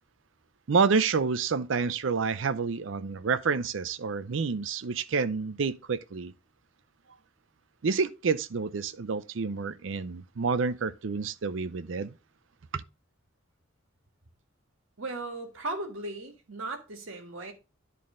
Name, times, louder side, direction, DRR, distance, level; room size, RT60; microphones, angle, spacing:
voice 1, 0.7-6.3 7.8-12.1 12.7-12.8, right 5 dB, 65° right, 0.5 m, -28 dB
voice 2, 15.0-17.5, right 2 dB, 85° right, 1.7 m, -37 dB
10.5 x 4.2 x 3.7 m
head